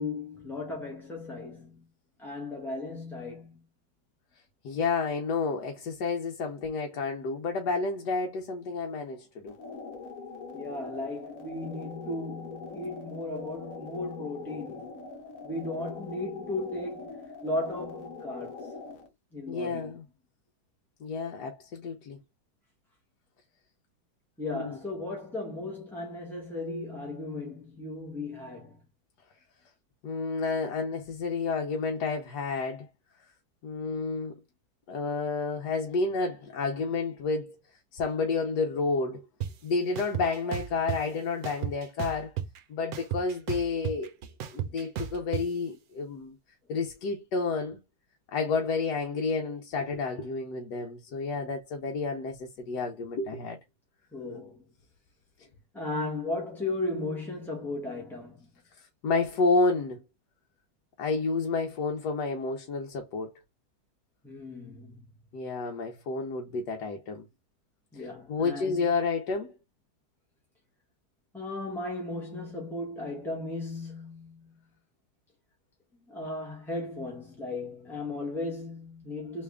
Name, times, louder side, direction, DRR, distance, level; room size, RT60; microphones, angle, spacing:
voice 1, 0.0-1.8 2.2-3.6 10.5-14.9 15.4-18.8 19.3-19.9 24.4-28.8 54.1-54.6 55.7-58.5 64.2-65.0 67.9-68.8 71.3-74.6 76.1-79.4, left 2 dB, ahead, 0.6 m, -36 dB
voice 2, 4.6-9.6 19.5-20.0 21.0-22.2 24.5-24.8 30.0-32.9 33.6-34.4 34.9-37.5 37.9-39.2 39.6-42.3 42.7-44.1 44.5-46.4 46.7-47.8 48.3-53.6 58.7-60.0 61.0-63.3 65.3-67.3 68.3-69.5, left 4 dB, 70° left, 1.2 m, -30 dB
sound 1, 9.5-19.1, left 4 dB, 55° left, 1.2 m, -43 dB
sound 2, 39.4-39.5 40.0-41.0 41.4-42.6 42.9-45.4, right 10 dB, 65° right, 1.0 m, -33 dB
3.3 x 3.2 x 3.5 m
omnidirectional pair, 1.9 m